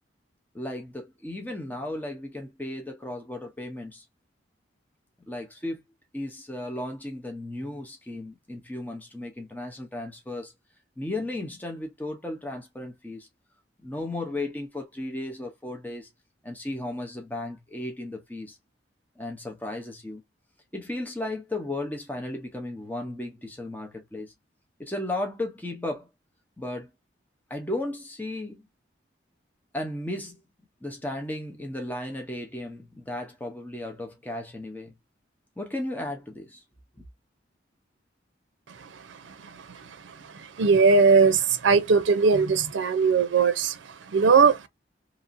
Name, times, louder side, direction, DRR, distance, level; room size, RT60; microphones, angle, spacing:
voice 1, 0.5-4.0 5.3-5.8 6.1-10.5 11.0-13.3 13.8-16.1 16.4-18.6 19.2-20.2 20.7-24.3 24.8-26.1 26.6-26.9 27.5-28.6 29.7-30.4 30.8-34.9 35.6-36.6 37.0-37.1, left 1 dB, 10° left, 0.6 m, -35 dB
voice 2, 40.3-43.8 44.1-44.6, right 5 dB, 80° right, 0.5 m, -19 dB
2.9 x 2.6 x 2.5 m
head